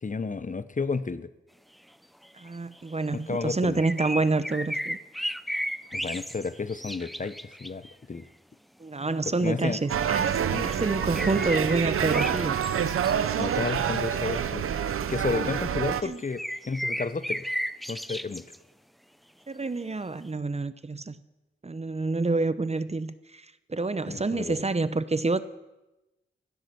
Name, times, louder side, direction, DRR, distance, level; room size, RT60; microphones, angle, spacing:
voice 1, 0.0-1.3 3.1-3.8 5.9-8.3 9.4-9.8 10.5-10.7 13.4-14.7 15.1-17.5 17.9-18.4 24.1-24.6, left 4 dB, 35° left, 14 dB, 0.8 m, -32 dB
sound 1, 2.2-2.9 3.8-7.9 10.8-14.0 14.7-14.8 15.3-15.7 16.0-18.6 19.9-20.0, equal, ahead, 0.7 m, -34 dB
voice 2, 2.4-5.0 8.8-12.6 16.0-16.2 19.5-21.2 21.6-25.4, right 3 dB, 30° right, 14 dB, 0.9 m, -28 dB
sound 2, 9.9-16.0, right 8 dB, 90° right, 0.8 m, -27 dB
16.0 x 10.0 x 6.9 m, 1.0 s
cardioid pair, 50°, 21 cm